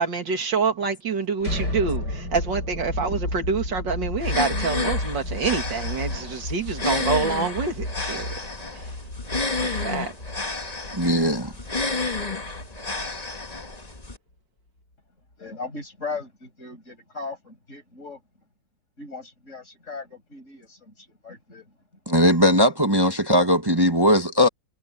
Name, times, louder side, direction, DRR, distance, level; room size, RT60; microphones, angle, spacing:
voice 1, 0.0-8.3 8.7-9.0 9.6-10.1, right 5 dB, 85° right, 3.0 m, -26 dB
sound 1, 1.4-13.2, left 1 dB, 65° left, 7.8 m, -32 dB
sound 2, 4.2-14.2, left 3 dB, 20° left, 1.7 m, -31 dB
voice 2, 10.9-11.5 22.1-24.5, equal, 15° right, 1.1 m, -19 dB
voice 3, 15.4-18.2 19.0-21.8, left 4 dB, 40° left, 6.2 m, -38 dB
omnidirectional pair, 1.9 m